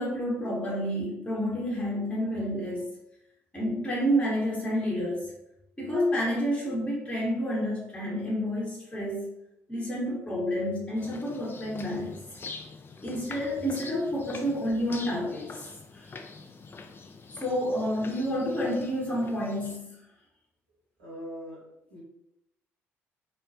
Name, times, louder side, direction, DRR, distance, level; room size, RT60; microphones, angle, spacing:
voice 1, 0.0-3.0 3.5-5.3 5.8-9.3 9.7-12.2 13.0-15.7 15.9-16.1 17.3-20.0, equal, 15° left, -5 dB, 0.9 m, -29 dB
sound 1, 11.0-19.8, left 4 dB, 30° left, 0.3 m, -45 dB
voice 2, 21.0-22.0, equal, 80° right, -5 dB, 0.9 m, -42 dB
2.2 x 2.1 x 2.6 m, 0.82 s
hypercardioid pair, 50°, 7 cm